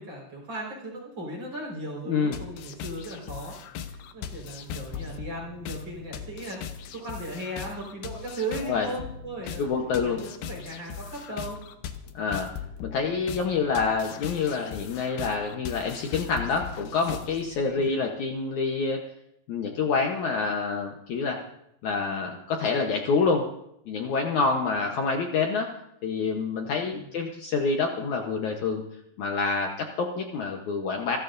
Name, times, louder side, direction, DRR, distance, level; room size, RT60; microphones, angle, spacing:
voice 1, 0.0-9.7 10.0-11.6 26.9-27.1, right 1 dB, 25° right, -2 dB, 5.1 m, -37 dB
voice 2, 2.1-2.4 8.7-8.9 9.6-10.2 12.1-12.5 12.8-19.0 19.5-21.4 21.8-23.4 23.9-25.7 26.0-28.8 29.2-31.2, left 4 dB, 90° left, 2 dB, 1.6 m, -27 dB
sound 1, 2.3-17.6, left 8 dB, 75° left, 2.6 m, -39 dB
27.5 x 14.0 x 2.7 m, 0.76 s
omnidirectional pair, 5.1 m